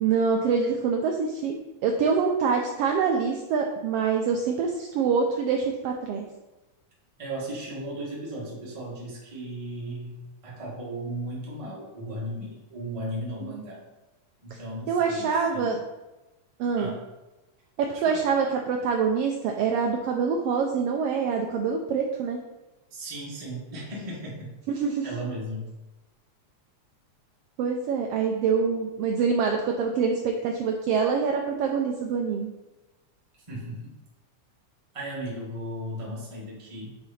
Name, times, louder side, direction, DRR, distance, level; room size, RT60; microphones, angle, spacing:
voice 1, 0.0-6.3 13.4-13.5 14.9-15.8 16.6-16.9 17.8-22.4 24.7-25.1 27.6-32.5, right 5 dB, 85° right, 2 dB, 1.3 m, -25 dB
voice 2, 7.2-10.2 10.4-13.8 14.4-15.8 16.8-17.0 17.9-18.2 22.9-24.5 25.0-25.7 33.5-33.9 34.9-36.9, right 1 dB, 20° right, -5 dB, 0.8 m, -36 dB
6.1 x 4.7 x 4.1 m, 1.1 s
omnidirectional pair, 3.4 m